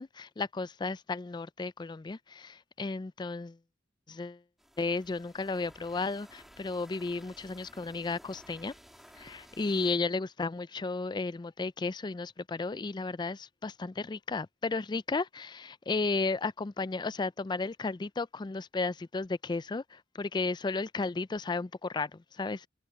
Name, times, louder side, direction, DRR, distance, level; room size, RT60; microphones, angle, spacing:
voice 1, 0.0-3.6 4.1-4.4 4.8-8.7 9.2-22.7, left 3 dB, 25° left, 0.4 m, -34 dB
sound 1, 4.6-10.0, equal, ahead, 3.1 m, -55 dB
head